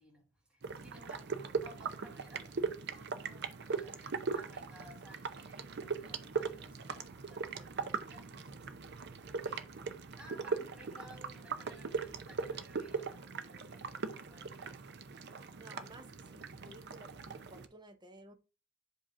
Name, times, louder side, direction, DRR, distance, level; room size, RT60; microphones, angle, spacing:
voice 1, 0.0-2.6 2.9-14.8, equal, 5° right, 1.5 m, -58 dB
sound 1, 0.6-17.7, right 5 dB, 50° right, 0.6 m, -40 dB
voice 2, 15.6-18.3, right 1 dB, 20° right, 0.8 m, -55 dB
7.6 x 2.9 x 4.9 m
head